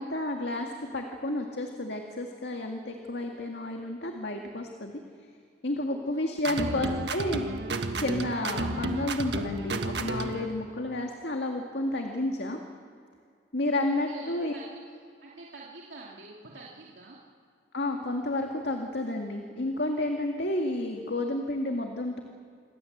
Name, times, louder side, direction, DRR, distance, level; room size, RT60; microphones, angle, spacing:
voice 1, 0.0-5.0 5.6-7.5 8.0-12.6 13.5-14.5 17.7-22.2, left 1 dB, 70° left, 2 dB, 2.1 m, -31 dB
voice 2, 6.0-7.0 13.7-14.8 15.2-17.2, right 2 dB, 90° right, -4 dB, 2.6 m, -47 dB
sound 1, 6.4-10.5, right 2 dB, 70° right, 1.6 m, -32 dB
27.5 x 21.5 x 8.0 m, 2.3 s
head